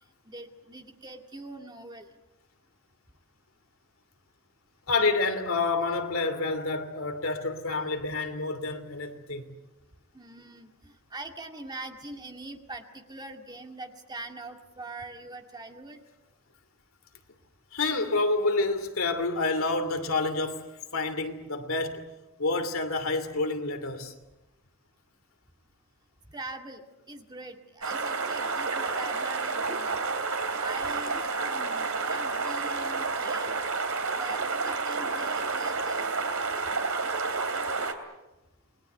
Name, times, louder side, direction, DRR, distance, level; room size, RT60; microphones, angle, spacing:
voice 1, 0.2-2.1 10.1-16.0 26.3-33.5 34.1-36.1 36.5-36.7, right 2 dB, 20° right, 2.1 m, -43 dB
voice 2, 4.9-9.4 17.7-20.7 20.9-22.1 22.4-24.1, left 3 dB, 70° left, 2.9 m, -28 dB
sound 1, 27.8-37.9, right 4 dB, 75° right, 3.0 m, -30 dB
29.0 x 21.5 x 8.1 m
head